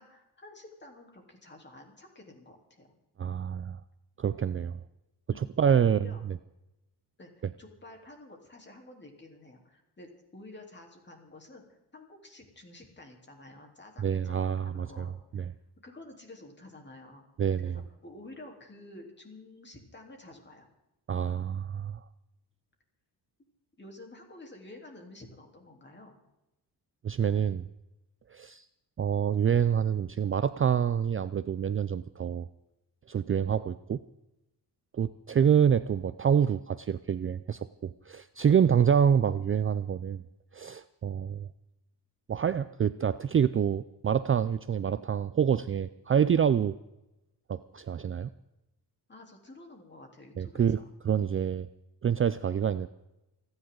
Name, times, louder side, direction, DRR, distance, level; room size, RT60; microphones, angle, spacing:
voice 1, 0.0-2.9 5.3-6.2 7.2-15.5 15.8-17.2 17.6-20.7 23.8-26.2 49.1-50.9, left 2 dB, 25° left, 2 dB, 3.6 m, -50 dB
voice 2, 3.2-3.8 4.2-4.8 5.3-6.1 14.0-15.1 15.3-15.5 17.4-17.8 21.1-22.0 27.0-27.7 28.3-28.7 29.0-32.5 33.1-34.0 34.9-40.2 40.5-41.5 42.3-46.8 47.5-48.3 50.4-50.8 51.0-51.7 52.0-52.9, right 8 dB, 35° right, 14 dB, 0.4 m, -27 dB
29.0 x 10.5 x 3.9 m, 0.94 s
cardioid pair, 120°, 40 cm